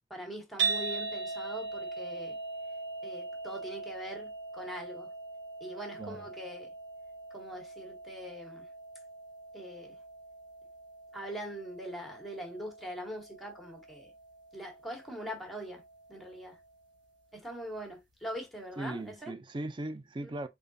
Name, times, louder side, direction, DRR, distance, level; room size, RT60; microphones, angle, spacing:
voice 1, 0.1-2.4 3.0-5.1 5.6-6.7 7.3-8.6 9.5-10.0 11.1-14.1 14.5-15.8 16.1-16.6 17.3-19.3 20.2-20.4, equal, ahead, 1.2 m, -42 dB
sound 1, 0.6-16.8, right 4 dB, 70° right, 1.3 m, -41 dB
voice 2, 18.8-20.5, right 2 dB, 25° right, 0.4 m, -38 dB
4.6 x 3.6 x 2.6 m
head